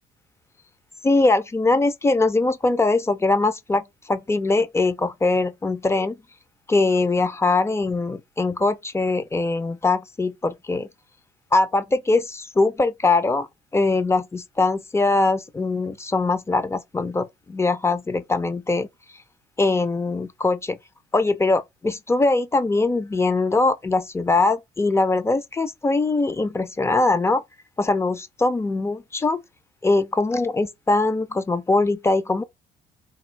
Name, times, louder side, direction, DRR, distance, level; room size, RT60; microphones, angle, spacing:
voice 1, 1.0-6.2 6.7-10.9 11.5-13.5 13.7-18.9 19.6-20.8 21.1-27.4 27.8-29.4 29.8-32.4, left 3 dB, 15° left, 0.5 m, -22 dB
3.5 x 2.4 x 4.4 m
cardioid pair, 110°, 17 cm